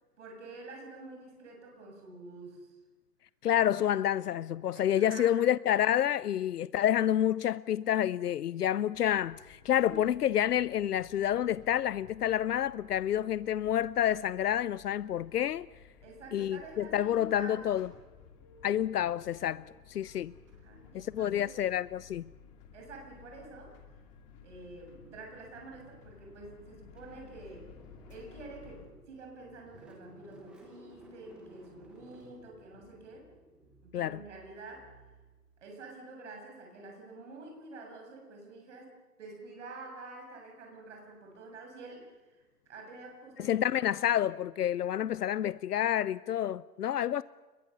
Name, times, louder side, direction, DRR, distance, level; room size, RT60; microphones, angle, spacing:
voice 1, 0.2-2.8 4.7-5.3 9.8-10.1 16.0-17.6 20.5-21.6 22.7-23.7 24.4-27.7 28.1-33.3 33.8-35.0 35.6-42.4 42.7-43.9, right 3 dB, 50° right, 7.4 m, -48 dB
voice 2, 3.4-15.7 16.3-17.9 18.6-20.3 20.9-22.2 33.9-34.2 43.4-47.2, left 11 dB, 80° left, 0.7 m, -29 dB
sound 1, 8.9-28.8, left 6 dB, 20° left, 2.4 m, -56 dB
Car / Engine starting, 27.0-35.7, right 1 dB, ahead, 0.9 m, -57 dB
26.0 x 22.5 x 7.0 m
hypercardioid pair, 170°, 46 cm